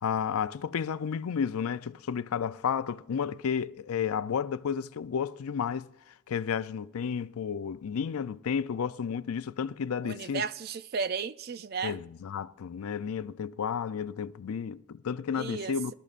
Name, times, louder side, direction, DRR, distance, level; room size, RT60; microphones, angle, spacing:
voice 1, 0.0-5.9 6.3-10.5 11.8-15.9, left 7 dB, 85° left, 0.4 m, -32 dB
voice 2, 10.0-12.0 15.3-15.9, right 5 dB, 45° right, 0.4 m, -34 dB
20.5 x 12.0 x 2.5 m
head